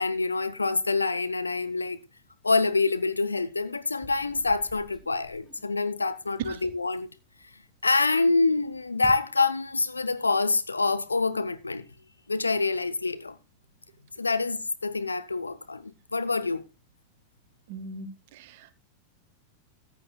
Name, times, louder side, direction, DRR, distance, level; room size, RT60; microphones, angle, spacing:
voice 1, 0.0-2.0 2.4-7.1 7.8-11.8 12.3-13.4 14.2-16.6, left 3 dB, 80° left, 0.6 m, -26 dB
sound 1, 3.9-7.2 7.6-8.1 8.4-9.1, left 2 dB, 15° left, 2.7 m, -49 dB
voice 2, 17.7-18.7, right 2 dB, 50° right, 0.8 m, -41 dB
14.0 x 9.2 x 2.3 m
figure-of-eight pair, 90°, 0 cm